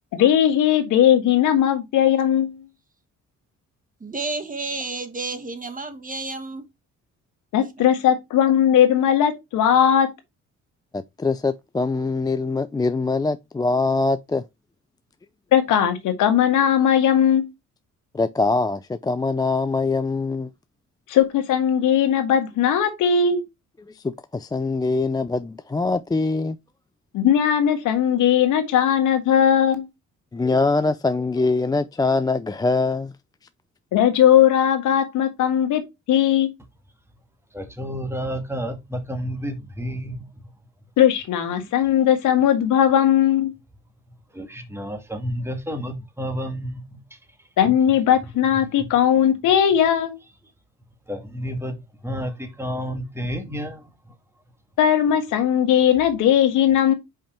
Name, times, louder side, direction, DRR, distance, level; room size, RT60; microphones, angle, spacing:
voice 1, 0.1-2.6 7.5-10.1 15.5-17.5 21.1-23.4 27.1-29.9 33.9-35.8 36.1-36.5 41.0-43.5 47.6-50.2 54.8-56.9, left 9 dB, 85° left, 1.6 m, -18 dB
voice 2, 4.0-6.6, right 3 dB, 25° right, 1.4 m, -31 dB
voice 3, 10.9-14.4 18.1-20.5 23.9-26.6 30.3-33.1, left 3 dB, 15° left, 0.4 m, -23 dB
voice 4, 37.5-40.3 44.3-47.2 51.1-53.9, equal, 10° right, 2.1 m, -30 dB
5.5 x 5.1 x 4.4 m
cardioid pair, 90°, 30 cm